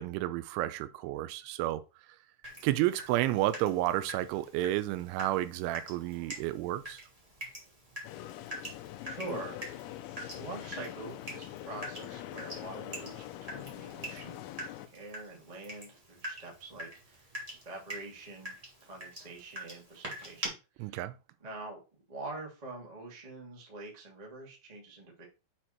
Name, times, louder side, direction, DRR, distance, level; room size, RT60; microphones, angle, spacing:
voice 1, 0.0-1.8 2.6-7.0 20.8-21.1, right 15 dB, 85° right, 3.0 m, -31 dB
Water tap faucet / Drip, 2.4-20.5, right 1 dB, 20° right, 0.9 m, -45 dB
sound 1, 8.0-14.9, left 14 dB, 80° left, 2.7 m, -44 dB
voice 2, 9.0-14.4 14.8-17.3 17.6-18.5 18.8-20.5 20.7-21.0 21.4-21.8 22.1-25.2, right 2 dB, 50° right, 0.4 m, -45 dB
8.1 x 4.4 x 4.4 m
omnidirectional pair, 5.5 m